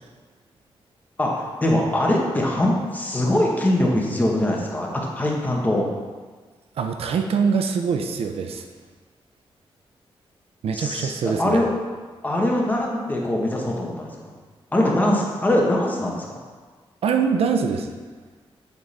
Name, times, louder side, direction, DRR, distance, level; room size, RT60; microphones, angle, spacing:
voice 1, 1.2-5.8 10.7-11.7 12.2-14.1 14.7-16.4, left 1 dB, 15° left, -2 dB, 1.2 m, -22 dB
voice 2, 6.8-8.6 10.6-11.6 17.0-17.9, right 6 dB, 85° right, 5 dB, 0.6 m, -23 dB
8.0 x 3.8 x 4.2 m, 1.4 s
wide cardioid pair, 120°, 10 cm